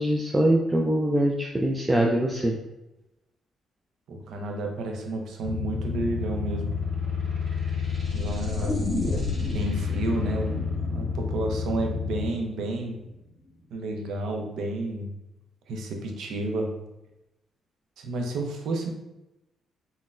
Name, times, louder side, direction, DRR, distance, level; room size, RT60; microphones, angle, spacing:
voice 1, 0.0-2.6, right 1 dB, 15° right, 0 dB, 0.3 m, -23 dB
voice 2, 4.1-6.8 8.1-8.8 9.4-13.0 13.7-15.1 15.7-16.8 18.0-18.9, right 2 dB, 75° right, 3 dB, 0.5 m, -31 dB
sound 1, 5.4-12.3, left 6 dB, 60° right, 1.2 m, -29 dB
sound 2, 8.6-12.6 12.9-13.0, left 1 dB, 40° left, 0.7 m, -34 dB
3.9 x 2.1 x 2.4 m, 0.95 s
cardioid pair, 90°, 0 cm